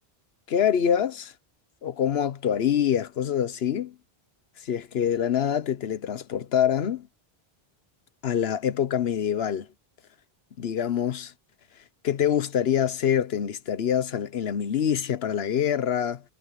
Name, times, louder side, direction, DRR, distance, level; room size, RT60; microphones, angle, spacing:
voice 1, 0.5-1.3 1.8-3.9 4.6-7.1 8.2-9.7 10.6-11.3 12.0-16.2, left 9 dB, 75° left, 1.1 m, -25 dB
omnidirectional pair, 1.0 m